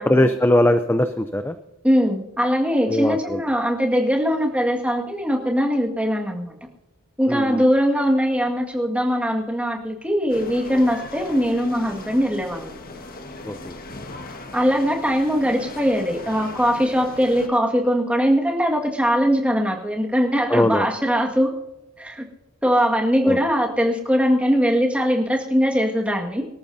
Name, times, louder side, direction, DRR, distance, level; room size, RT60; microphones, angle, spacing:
voice 1, 0.1-1.6 2.9-3.4 7.3-7.6 13.5-13.7 20.5-20.9 23.2-23.4, left 1 dB, 10° left, 9 dB, 0.5 m, -20 dB
voice 2, 1.8-6.5 7.2-12.7 14.5-21.5 22.0-22.2 22.6-26.5, equal, 5° right, 1 dB, 1.8 m, -21 dB
sound 1, 10.3-17.5, left 2 dB, 40° left, 1.5 m, -38 dB
24.0 x 13.5 x 2.7 m, 0.94 s
head